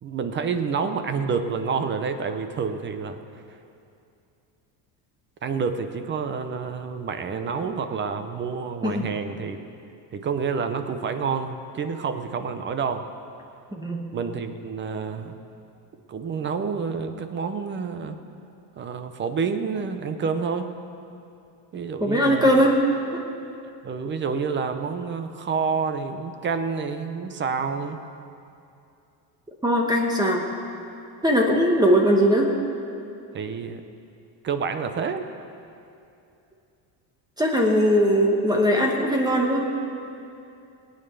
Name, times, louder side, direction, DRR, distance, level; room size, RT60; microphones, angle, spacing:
voice 1, 0.0-3.2 5.4-9.6 10.1-13.0 14.1-15.4 16.1-18.2 18.8-20.7 21.7-22.6 23.8-28.0 33.3-33.8 34.4-35.3, right 5 dB, 25° right, 9 dB, 0.6 m, -28 dB
voice 2, 13.7-14.1 22.0-22.8 23.1-23.2 29.6-30.4 31.2-32.5 37.4-39.7, equal, 10° right, 0 dB, 1.0 m, -20 dB
19.0 x 9.0 x 6.8 m, 2.6 s
cardioid pair, 165°, 45 cm